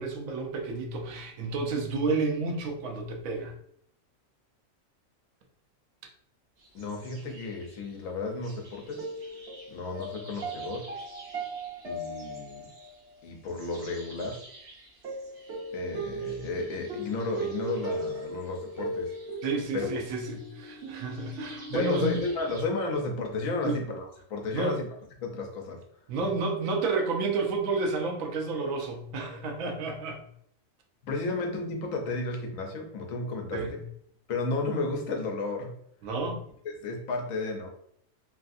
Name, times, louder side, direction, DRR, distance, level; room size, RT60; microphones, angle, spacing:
voice 1, 0.0-3.5 19.4-22.2 23.6-23.8 24.5-24.8 26.1-30.2 33.5-33.8 36.0-36.4, right 3 dB, 80° right, 3 dB, 1.0 m, -30 dB
sound 1, 6.6-7.8 8.4-22.6, right 2 dB, 55° right, 0.9 m, -39 dB
voice 2, 6.7-9.0 9.7-10.9 11.8-12.7 13.2-14.4 15.7-19.1 19.7-19.9 21.7-24.9 25.2-25.8 31.0-33.8 34.3-35.7 36.6-37.7, left 3 dB, 80° left, 2 dB, 1.1 m, -33 dB
3.1 x 2.5 x 2.5 m, 0.67 s
omnidirectional pair, 1.4 m